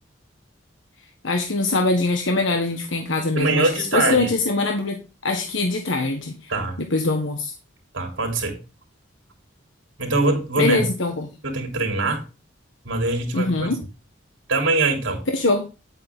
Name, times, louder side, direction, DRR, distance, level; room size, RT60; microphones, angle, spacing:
voice 1, 1.2-5.0 5.2-6.5 6.9-7.5 10.6-11.3 13.3-13.8 15.3-15.7, left 2 dB, 75° left, 4 dB, 1.4 m, -22 dB
voice 2, 3.4-4.3 6.5-6.8 7.9-8.6 10.0-10.8 11.4-12.3 12.9-13.7 14.5-15.2, right 2 dB, 75° right, 4 dB, 3.4 m, -23 dB
9.9 x 8.3 x 3.7 m, 0.31 s
head